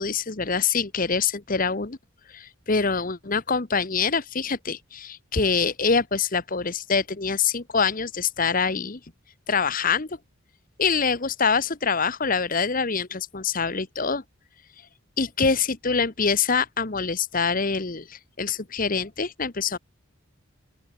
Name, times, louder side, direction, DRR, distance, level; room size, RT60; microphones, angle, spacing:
voice 1, 0.0-2.0 2.3-9.0 9.5-10.2 10.8-14.2 15.2-19.8, left 5 dB, 40° left, 1.1 m, -25 dB
open air
head